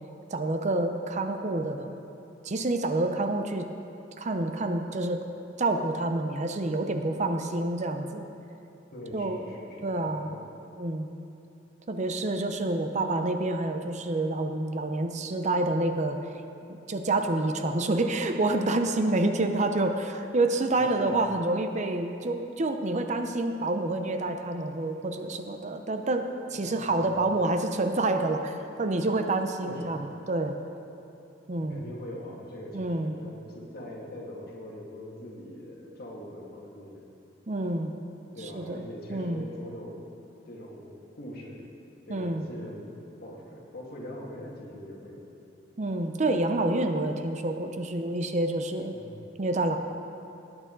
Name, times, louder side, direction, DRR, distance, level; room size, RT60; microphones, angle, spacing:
voice 1, 0.3-1.9 2.4-3.7 4.2-5.2 5.6-8.2 9.1-9.5 9.8-10.3 10.8-11.1 11.9-16.2 16.9-30.6 31.5-31.8 32.7-33.1 37.5-37.9 38.4-38.8 39.1-39.4 42.1-42.4 45.8-48.9 49.4-49.8, right 2 dB, 40° right, 6 dB, 0.6 m, -28 dB
voice 2, 8.9-10.4 20.7-21.1 26.5-27.2 29.6-30.0 31.6-37.1 38.3-40.0 40.5-41.6 42.1-42.9 43.2-45.2 48.9-49.2, left 1 dB, 55° left, -3 dB, 2.2 m, -42 dB
18.5 x 8.8 x 3.9 m, 2.7 s
head